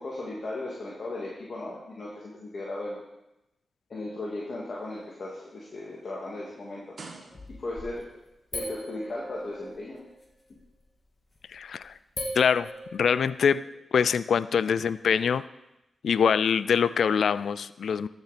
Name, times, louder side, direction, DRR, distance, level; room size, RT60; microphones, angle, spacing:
voice 1, 0.0-3.0 3.9-6.9 7.6-8.0 8.5-10.0, left 2 dB, 60° left, -5 dB, 2.2 m, -36 dB
sound 1, 4.8-7.9 8.8-8.9, right 3 dB, 60° right, 1.9 m, -49 dB
sound 2, 7.3-8.1 8.5-10.2 11.4-11.6 12.2-13.4, left 1 dB, 40° left, 1.9 m, -38 dB
voice 2, 11.5-11.9 12.3-13.7 13.9-15.4 16.0-18.1, left 7 dB, 75° left, 17 dB, 0.3 m, -24 dB
13.0 x 6.9 x 4.2 m, 0.92 s
supercardioid pair, 45°, 0 cm